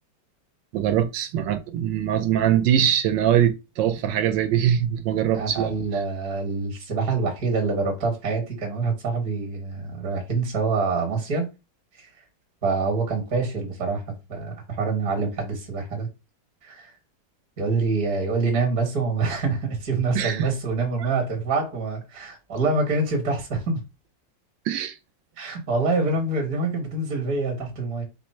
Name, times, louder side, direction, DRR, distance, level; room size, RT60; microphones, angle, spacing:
voice 1, 0.7-5.7 20.1-20.5 24.7-24.9, right 10 dB, 80° right, 1.3 m, -22 dB
voice 2, 5.3-11.5 12.0-12.1 12.6-14.0 14.3-16.1 16.6-16.9 17.6-23.8 25.4-28.0, right 3 dB, 55° right, 2.0 m, -26 dB
5.3 x 2.1 x 4.3 m
omnidirectional pair, 2.0 m